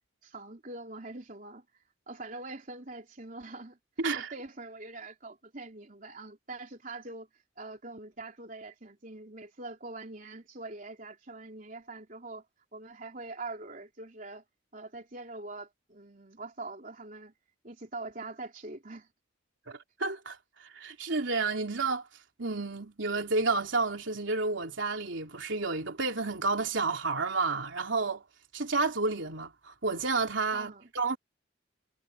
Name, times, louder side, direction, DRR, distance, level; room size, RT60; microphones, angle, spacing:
voice 1, 0.2-3.8 4.1-7.3 7.6-12.4 12.7-14.4 14.7-17.3 17.6-19.1 30.5-30.9, right 2 dB, 45° right, 3.6 m, -43 dB
voice 2, 4.0-4.3 19.7-22.1 22.4-28.2 28.5-31.2, right 3 dB, 75° right, 3.2 m, -31 dB
head